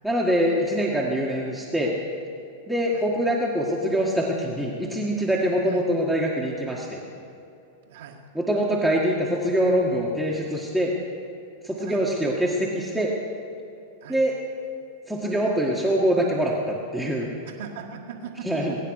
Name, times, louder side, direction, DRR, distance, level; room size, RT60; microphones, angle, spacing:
voice 1, 0.0-1.9 2.7-7.0 8.4-10.9 11.6-13.1 14.1-14.4 15.1-17.3 18.5-18.8, equal, ahead, -3 dB, 1.8 m, -24 dB
voice 2, 7.9-8.2 11.8-12.0 14.0-14.2 17.4-18.4, right 7 dB, 75° right, -5 dB, 1.7 m, -40 dB
21.5 x 9.2 x 6.6 m, 2.7 s
hypercardioid pair, 110°, 0 cm